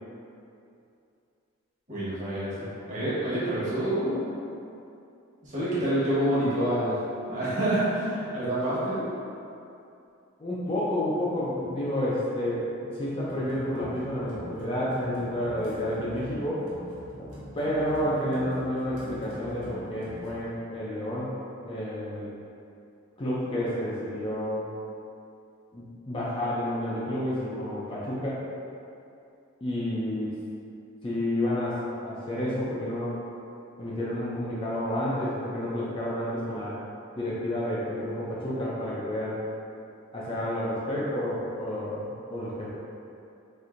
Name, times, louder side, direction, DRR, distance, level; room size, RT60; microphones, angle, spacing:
voice 1, 1.9-4.2 5.4-7.0 7.3-9.0, right 1 dB, 35° right, -11 dB, 1.2 m, -27 dB
voice 2, 10.4-16.7 17.2-17.3 17.5-21.3 21.6-22.3 23.2-24.7 25.7-28.4 29.6-30.4 31.0-33.2 33.8-36.8 37.2-39.4 40.1-42.7, left 1 dB, 25° left, -8 dB, 0.4 m, -30 dB
sound 1, 13.2-20.4, equal, 90° right, 0.8 m, -44 dB
4.2 x 2.6 x 2.5 m, 2.6 s
head